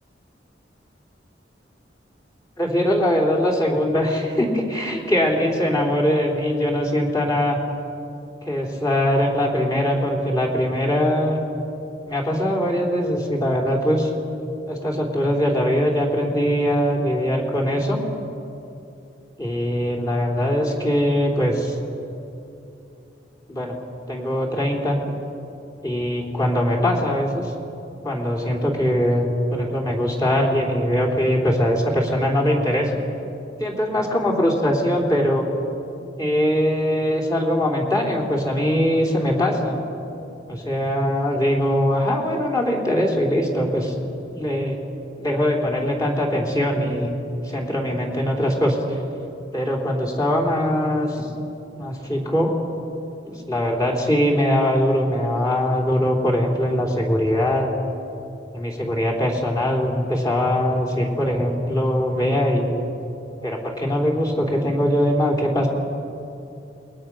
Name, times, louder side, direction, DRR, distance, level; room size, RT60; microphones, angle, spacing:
voice 1, 2.6-7.6 8.4-11.4 12.1-14.1 14.7-18.0 19.4-21.8 23.5-23.8 24.1-25.0 25.8-27.5 28.0-33.0 33.6-35.5 36.2-39.8 40.5-43.9 44.3-44.8 45.2-49.0 49.5-51.3 51.7-52.5 53.2-57.7 58.5-62.8 63.4-65.7, equal, 20° left, -2 dB, 3.6 m, -21 dB
28.5 x 21.0 x 6.3 m, 2.8 s
head